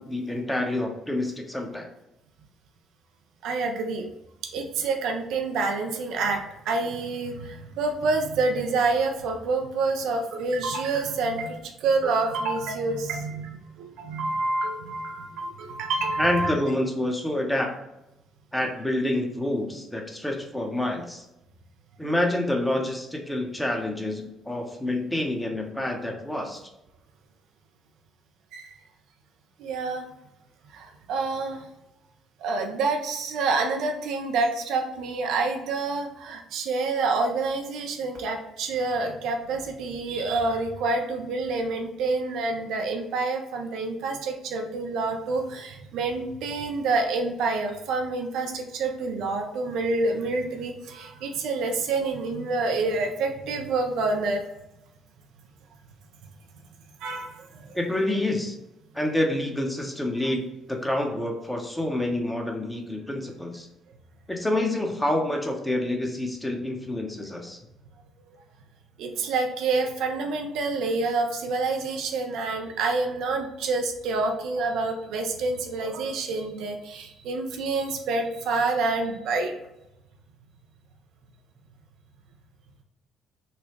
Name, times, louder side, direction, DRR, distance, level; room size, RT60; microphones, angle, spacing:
voice 1, 0.0-1.9 16.2-17.7 18.5-21.2 22.0-26.6 57.7-58.6 58.9-63.7 64.3-67.6, left 1 dB, 10° left, 2 dB, 0.9 m, -27 dB
voice 2, 3.4-4.1 4.5-16.5 28.5-28.7 29.6-30.1 30.7-31.7 32.4-54.4 57.0-57.8 69.0-79.5, right 3 dB, 70° right, 3 dB, 0.4 m, -27 dB
4.0 x 2.2 x 3.1 m, 0.91 s
hypercardioid pair, 45°, 0 cm